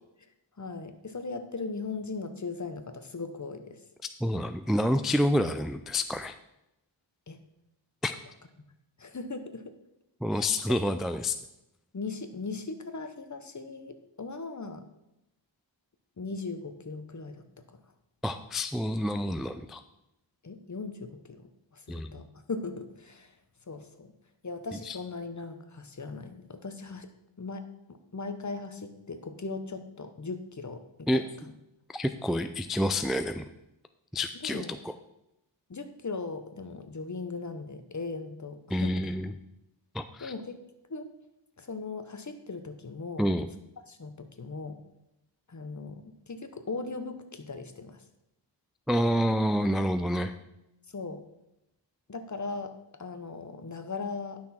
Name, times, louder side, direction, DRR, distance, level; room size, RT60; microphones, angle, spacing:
voice 1, 0.6-3.8 7.3-7.4 9.0-9.7 10.3-10.5 11.9-14.9 16.2-17.8 20.4-23.3 23.7-24.1 24.4-27.1 27.4-31.2 34.4-34.8 35.7-39.1 40.2-40.6 40.9-41.1 41.6-43.3 43.9-44.8 45.5-48.0 50.9-51.2 52.1-54.4, left 3 dB, 40° left, 8 dB, 1.0 m, -38 dB
voice 2, 4.2-6.4 8.0-8.2 10.2-11.4 18.2-19.8 21.9-22.2 24.9-25.0 31.1-31.2 31.9-33.5 34.1-34.9 38.7-39.3 39.9-40.3 43.2-43.5 48.9-50.3, equal, ahead, 9 dB, 0.3 m, -28 dB
11.0 x 6.1 x 4.3 m, 0.89 s
wide cardioid pair, 70°, 45 cm